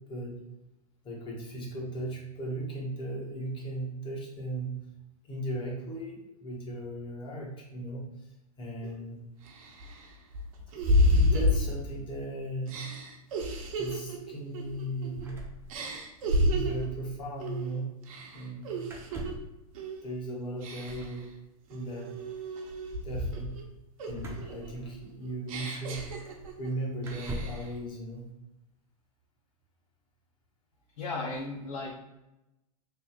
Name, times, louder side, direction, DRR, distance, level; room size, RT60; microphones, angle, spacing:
voice 1, 0.1-0.4 1.0-4.8 5.2-8.1 8.6-9.2 10.7-12.8 13.7-15.2 16.3-17.9 18.3-18.8 20.0-21.3 21.7-22.2 23.0-23.5 24.1-26.1 26.6-28.3, right 1 dB, 25° left, -2 dB, 1.3 m, -37 dB
sound 1, 8.8-8.9 9.5-12.2 12.7-15.3 15.7-16.9 17.4-17.7 18.0-19.3 19.7-20.1 20.6-21.2 21.7-23.6 24.0-26.7 27.0-27.7, left 1 dB, 65° right, 0.9 m, -30 dB
sound 2, 15.2-16.3 16.5-16.6 16.8-17.0 18.8-19.6 20.8-21.2 24.1-25.3 26.2-26.3 27.0-27.7, right 1 dB, 10° right, 0.8 m, -41 dB
voice 2, 31.0-31.9, left 3 dB, 70° left, -3 dB, 0.9 m, -35 dB
3.4 x 2.4 x 4.4 m, 0.95 s
hypercardioid pair, 110°, 19 cm